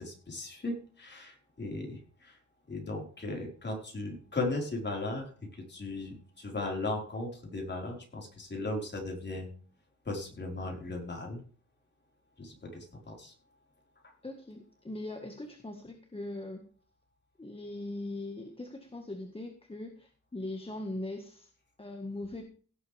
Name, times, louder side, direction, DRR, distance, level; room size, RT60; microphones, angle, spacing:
voice 1, 0.0-2.4 2.7-9.5 10.0-11.4 12.4-13.3, left 2 dB, 35° left, 0 dB, 4.9 m, -37 dB
voice 2, 14.2-16.6 17.4-21.5 21.8-22.4, left 2 dB, 20° left, 4 dB, 1.7 m, -40 dB
17.5 x 8.3 x 3.5 m, 0.41 s
wide cardioid pair, 115°, 29 cm